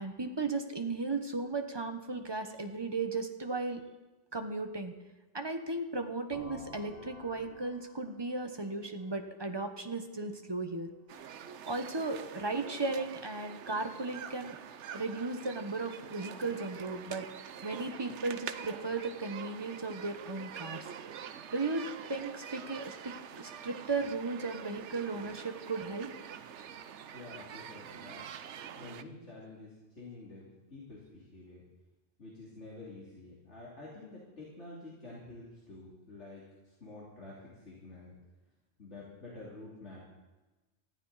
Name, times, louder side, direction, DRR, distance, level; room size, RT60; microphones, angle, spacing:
voice 1, 0.0-3.8 4.3-4.9 5.3-10.9 11.7-14.6 14.9-17.2 17.6-20.9 21.5-26.1, right 3 dB, 20° right, 6 dB, 1.1 m, -36 dB
sound 1, 6.3-10.0, left 3 dB, 55° left, 1.4 m, -53 dB
sound 2, 11.1-29.0, right 8 dB, 75° right, 1.0 m, -46 dB
voice 2, 27.1-28.2 28.8-31.6 32.2-38.1 38.8-40.1, left 2 dB, 75° left, -6 dB, 3.3 m, -49 dB
19.0 x 14.0 x 4.1 m, 1.1 s
omnidirectional pair, 1.2 m